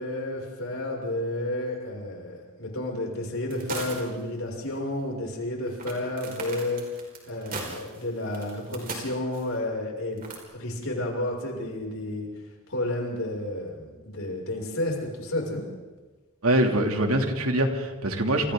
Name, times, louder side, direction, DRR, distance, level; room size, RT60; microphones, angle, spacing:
voice 1, 0.0-6.8 7.2-10.2 10.5-12.3 12.7-15.6, left 1 dB, 70° left, -1 dB, 6.5 m, -31 dB
sound 1, 3.5-4.2 4.5-4.6 5.8-9.5 10.2-10.4, right 3 dB, 40° right, 5.2 m, -38 dB
voice 2, 16.4-18.5, right 1 dB, 80° right, 3 dB, 2.9 m, -24 dB
29.0 x 28.0 x 3.9 m, 1.3 s
head